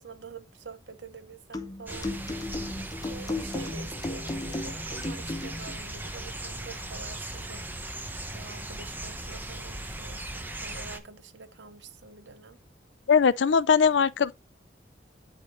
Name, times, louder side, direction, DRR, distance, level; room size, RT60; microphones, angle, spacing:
voice 1, 0.0-2.1 3.0-8.0 8.3-12.6, right 4 dB, 85° right, 0.9 m, -46 dB
sound 1, 1.5-5.8, left 2 dB, 20° left, 0.7 m, -35 dB
sound 2, 1.9-11.0, right 1 dB, 10° right, 0.8 m, -38 dB
voice 2, 13.1-14.3, left 6 dB, 90° left, 0.5 m, -20 dB
11.0 x 4.9 x 2.7 m
head